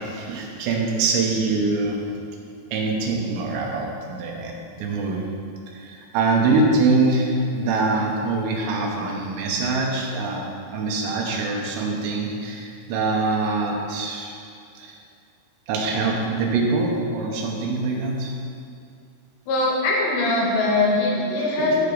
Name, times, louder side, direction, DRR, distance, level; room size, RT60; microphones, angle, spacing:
voice 1, 0.0-2.0 2.7-5.3 5.7-14.3 14.8-14.9 15.7-18.4 21.6-21.7, right 3 dB, 85° right, 0 dB, 3.3 m, -24 dB
voice 2, 19.5-21.8, left 2 dB, 90° left, -2 dB, 3.6 m, -21 dB
13.0 x 5.7 x 3.9 m, 2.4 s
omnidirectional pair, 4.9 m